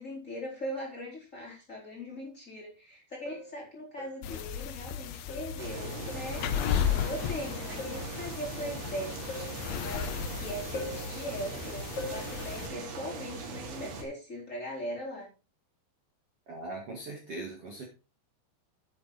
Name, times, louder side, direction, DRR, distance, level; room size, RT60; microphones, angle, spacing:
voice 1, 0.0-9.2 9.7-15.3, equal, 15° left, -4 dB, 4.1 m, -40 dB
sound 1, 2.2-2.3 3.3-3.6 4.0-4.3 5.3-5.6 6.1-6.4 7.8-8.1 9.3-9.6 10.7-11.1 12.0-12.3, left 2 dB, 45° left, 4.1 m, -40 dB
sound 2, 4.2-12.7, left 9 dB, 75° left, 2.3 m, -35 dB
sound 3, 5.6-14.0, right 4 dB, 90° right, 5.0 m, -40 dB
voice 2, 16.5-17.8, right 2 dB, 45° right, 0 dB, 2.3 m, -40 dB
10.0 x 8.8 x 4.2 m, 0.31 s
omnidirectional pair, 5.2 m